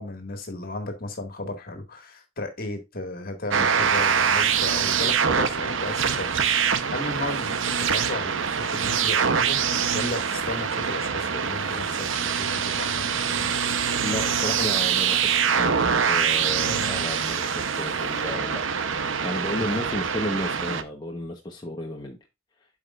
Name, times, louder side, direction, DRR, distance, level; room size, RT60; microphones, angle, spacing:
voice 1, 0.0-13.8 16.7-17.1 19.5-19.8, left 2 dB, 45° left, 1.9 m, -35 dB
sound 1, 3.5-20.8, right 7 dB, 65° right, 0.8 m, -24 dB
voice 2, 14.0-18.6 19.2-22.2, left 1 dB, 20° left, 1.0 m, -33 dB
12.0 x 5.0 x 2.4 m
head